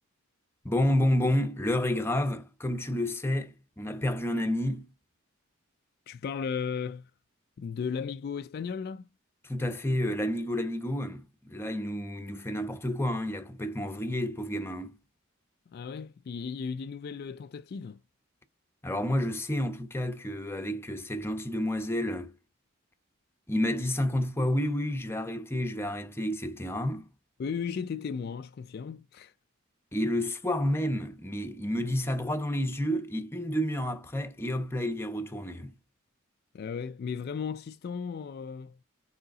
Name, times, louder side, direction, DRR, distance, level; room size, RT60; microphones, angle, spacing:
voice 1, 0.6-4.9 9.4-14.9 18.8-22.3 23.5-27.1 29.9-35.7, left 1 dB, 10° left, 0.8 m, -30 dB
voice 2, 6.1-7.1 7.6-9.1 15.7-18.0 27.4-29.3 36.5-38.8, left 6 dB, 50° left, 0.3 m, -35 dB
5.4 x 4.9 x 3.7 m
head